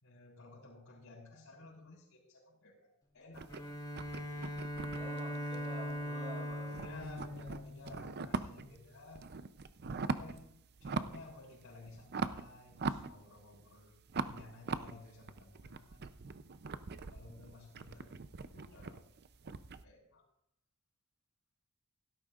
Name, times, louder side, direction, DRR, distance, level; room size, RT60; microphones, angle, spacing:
voice 1, 0.0-3.6 6.8-9.3 10.0-10.5 10.8-16.0 17.1-18.1 18.5-19.0 19.8-20.2, left 2 dB, 80° left, -8 dB, 4.2 m, -54 dB
sound 1, 3.3-6.2 6.5-8.8 9.1-10.4 10.8-11.3 11.6-13.6 14.1-19.8, right 4 dB, 50° right, 0.6 m, -41 dB
Bowed string instrument, 3.5-8.3, left 1 dB, 20° left, 2.7 m, -41 dB
voice 2, 4.9-6.9, equal, 30° right, -2 dB, 4.5 m, -48 dB
16.5 x 12.5 x 2.5 m, 0.78 s
head